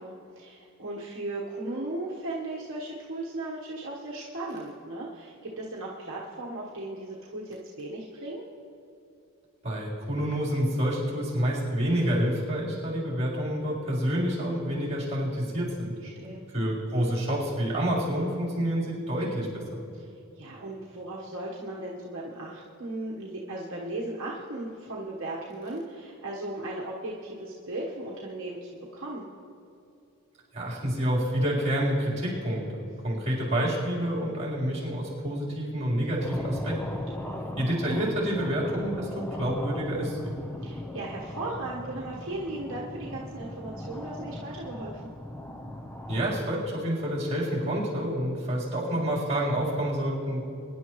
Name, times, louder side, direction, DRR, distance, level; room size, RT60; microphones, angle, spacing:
voice 1, 0.0-8.4 16.0-16.4 19.9-29.3 37.2-37.4 40.6-45.0, right 2 dB, 60° right, -4 dB, 1.2 m, -37 dB
voice 2, 9.6-15.9 16.5-19.8 30.5-36.8 37.6-40.4 46.1-50.4, equal, 30° right, -6 dB, 3.8 m, -28 dB
sound 1, 36.1-46.4, left 1 dB, 10° left, 0.5 m, -38 dB
24.0 x 10.5 x 3.1 m, 2.6 s
head